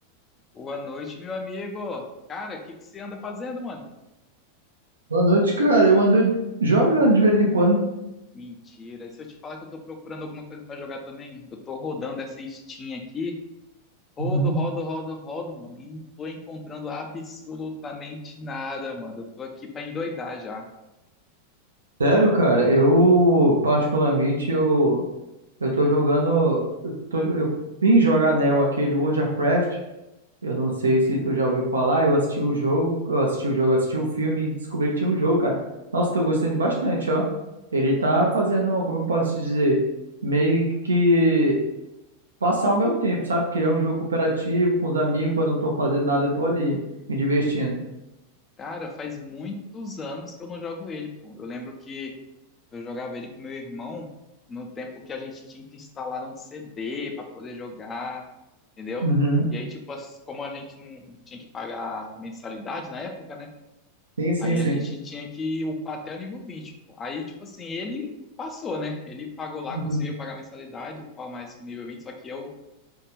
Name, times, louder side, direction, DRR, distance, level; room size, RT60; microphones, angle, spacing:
voice 1, 0.5-2.0 2.3-3.9 8.3-13.3 14.2-20.7 48.6-52.1 52.7-54.1 54.5-58.2 58.8-59.1 59.5-63.5 64.4-68.1 68.4-72.5, left 3 dB, 20° left, 3 dB, 0.5 m, -35 dB
voice 2, 5.1-6.3 6.6-7.8 14.2-14.5 22.0-25.0 25.6-27.5 27.8-29.8 30.4-35.5 35.9-37.2 37.7-39.8 40.2-41.6 42.4-46.8 47.1-47.8 59.0-59.4 64.2-64.8 69.7-70.0, right 1 dB, 70° right, -1 dB, 0.5 m, -21 dB
3.5 x 2.4 x 3.0 m, 0.96 s
figure-of-eight pair, 90°, 0 cm